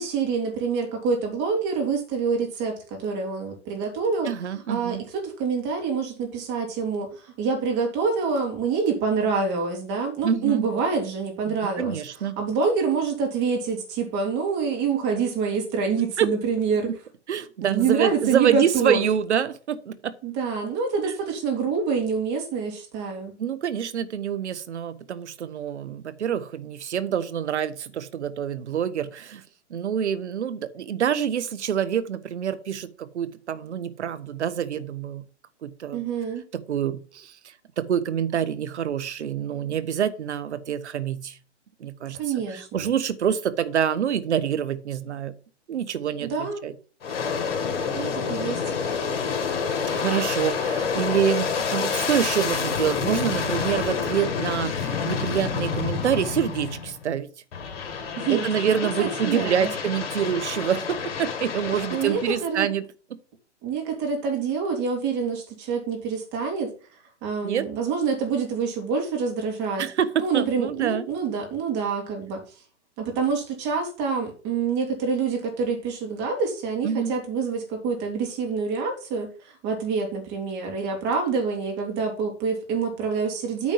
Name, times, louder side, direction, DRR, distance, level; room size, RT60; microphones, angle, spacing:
voice 1, 0.0-4.3 4.7-12.0 12.4-16.9 17.6-19.0 20.2-23.3 35.9-36.4 42.2-42.9 46.2-46.7 47.9-48.6 58.2-58.5 59.0-59.7 61.9-62.7 63.6-66.7 67.2-69.9 70.2-72.4 73.0-83.7, right 5 dB, 30° right, 2.9 m, -26 dB
voice 2, 4.2-5.0 10.2-10.6 11.5-12.4 16.2-16.3 17.3-20.1 21.0-21.1 23.4-29.4 29.7-35.2 35.6-36.0 36.5-41.4 41.8-45.3 45.7-46.7 49.9-57.3 58.3-63.2 67.4-67.7 69.8-71.0 76.8-77.1, right 8 dB, 70° right, 1.2 m, -26 dB
Aircraft, 47.0-57.0 57.5-62.5, left 6 dB, 55° left, 2.4 m, -28 dB
9.1 x 4.4 x 5.8 m
hypercardioid pair, 130°, 36 cm